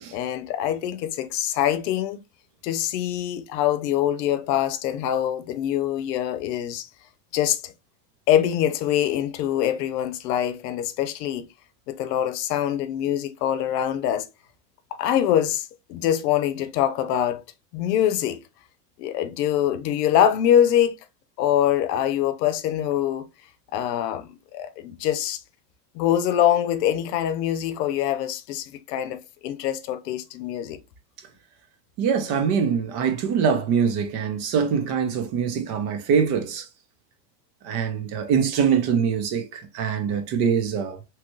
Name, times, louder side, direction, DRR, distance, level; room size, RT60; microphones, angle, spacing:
voice 1, 0.1-2.2 2.6-6.9 7.3-7.7 8.3-11.5 11.9-14.3 14.9-17.4 17.7-18.4 19.0-21.0 21.4-23.2 23.7-25.4 25.9-30.8, left 10 dB, 85° left, 0.7 m, -24 dB
voice 2, 32.0-36.7 37.6-41.0, right 7 dB, 50° right, 0.8 m, -23 dB
3.0 x 2.4 x 3.0 m
supercardioid pair, 125°, 48 cm